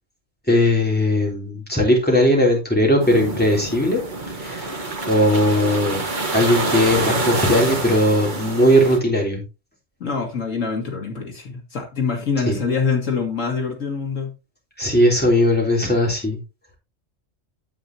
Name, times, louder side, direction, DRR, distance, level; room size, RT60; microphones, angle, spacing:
voice 1, 0.5-4.0 4.4-4.7 5.1-6.0 6.3-9.4 12.5-12.6 14.8-16.4, left 1 dB, 5° left, -2 dB, 3.4 m, -18 dB
sound 1, 3.0-9.0, right 2 dB, 40° right, 1.5 m, -26 dB
voice 2, 10.0-14.3, left 5 dB, 85° left, 2 dB, 2.4 m, -25 dB
9.3 x 8.1 x 2.8 m, 0.27 s
omnidirectional pair, 1.3 m